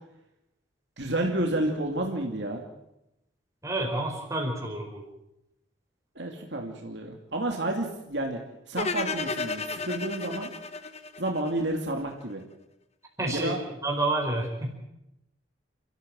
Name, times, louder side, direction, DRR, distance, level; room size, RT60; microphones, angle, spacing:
voice 1, 1.0-2.6 6.1-8.4 8.7-10.5 11.2-12.4 13.3-13.6, right 1 dB, 60° right, 2 dB, 2.6 m, -30 dB
voice 2, 3.6-5.0 13.2-13.5 13.8-14.7, right 2 dB, 15° right, 0 dB, 4.9 m, -29 dB
sound 1, 8.8-11.9, left 4 dB, 35° left, 1.1 m, -33 dB
29.0 x 14.0 x 7.7 m, 0.88 s
head